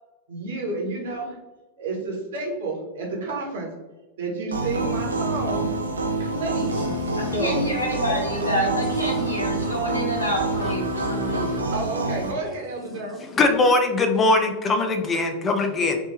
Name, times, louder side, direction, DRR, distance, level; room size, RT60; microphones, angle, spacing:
voice 1, 0.3-1.4 1.8-3.7 4.2-5.7 6.2-6.9 7.3-7.6 11.2-13.2, right 2 dB, 60° right, -2 dB, 1.1 m, -30 dB
sound 1, 4.5-12.3, right 2 dB, 75° right, 0.4 m, -27 dB
voice 2, 7.2-11.4, equal, 85° left, -3 dB, 1.0 m, -27 dB
voice 3, 9.1-11.3 13.4-16.0, left 2 dB, 20° left, 5 dB, 0.5 m, -23 dB
3.2 x 2.8 x 3.1 m, 1.1 s
figure-of-eight pair, 90°, 0 cm